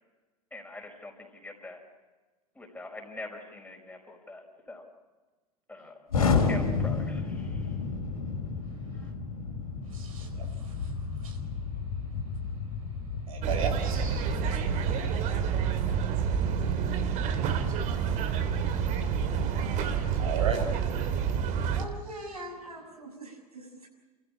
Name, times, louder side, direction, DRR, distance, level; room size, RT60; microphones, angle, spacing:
voice 1, 0.5-1.8 2.5-4.8 5.7-6.0 6.5-7.7 9.0-9.1, left 2 dB, 10° left, 2 dB, 5.2 m, -43 dB
Explosion, 6.1-16.0, left 5 dB, 75° left, 4.2 m, -32 dB
voice 2, 9.9-10.9 11.2-11.4 13.3-14.3 20.1-20.6, right 6 dB, 65° right, 3 dB, 4.6 m, -35 dB
sound 1, 13.4-21.8, right 7 dB, 40° right, 2.1 m, -28 dB
voice 3, 21.7-23.9, equal, 85° right, 0 dB, 6.8 m, -42 dB
29.0 x 15.0 x 8.8 m, 1.3 s
figure-of-eight pair, 80°, 19 cm